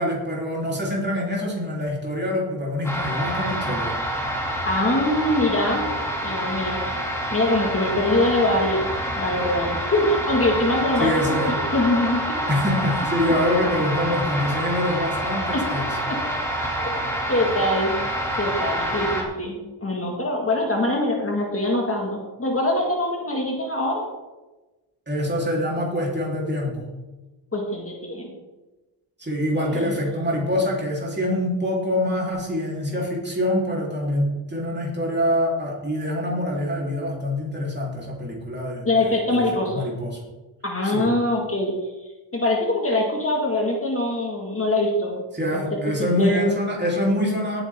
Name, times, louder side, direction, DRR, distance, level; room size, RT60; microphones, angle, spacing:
voice 1, 0.0-4.0 11.0-11.5 12.5-15.9 25.1-26.9 29.2-40.2 40.8-41.1 45.3-47.6, left 1 dB, 20° right, -3 dB, 3.8 m, -25 dB
sound 1, 2.8-19.2, equal, 5° left, 2.8 m, -27 dB
voice 2, 4.7-5.8 6.2-7.0 7.3-8.9 9.2-12.2 15.5-15.9 16.8-17.0 17.3-18.0 18.4-24.0 27.5-28.3 29.5-29.9 38.8-39.9 40.6-41.7 42.3-45.2 45.5-45.6 46.0-46.3, left 1 dB, 30° left, -1 dB, 2.1 m, -23 dB
18.0 x 9.1 x 3.8 m, 1.1 s
wide cardioid pair, 135°, 48 cm